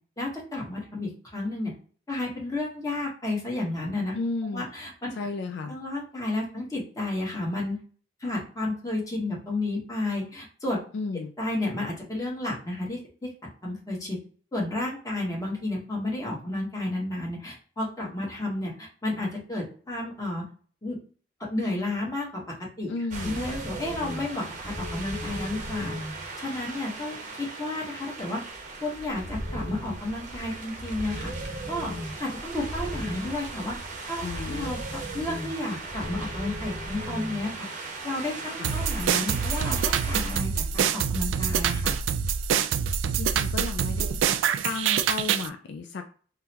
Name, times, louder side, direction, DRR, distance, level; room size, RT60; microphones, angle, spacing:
voice 1, 0.2-1.7 2.1-4.1 4.5-5.1 5.7-7.8 8.2-10.8 11.4-13.3 13.6-14.2 14.5-20.4 20.8-21.0 21.5-22.9 23.2-26.0 26.4-28.4 28.8-31.3 31.7-31.9 32.2-33.8 34.1-37.7 38.0-42.0, left 2 dB, 20° left, -4 dB, 1.1 m, -32 dB
voice 2, 4.1-4.6 5.1-5.8 10.9-11.3 22.9-23.4 34.2-34.8 38.6-38.8 43.2-44.1 44.6-46.0, left 3 dB, 60° left, 5 dB, 0.3 m, -33 dB
sound 1, 23.1-40.4, right 2 dB, 40° right, 0.7 m, -36 dB
sound 2, 38.6-45.5, right 7 dB, 80° right, 0.3 m, -26 dB
3.7 x 2.0 x 2.8 m, 0.41 s
head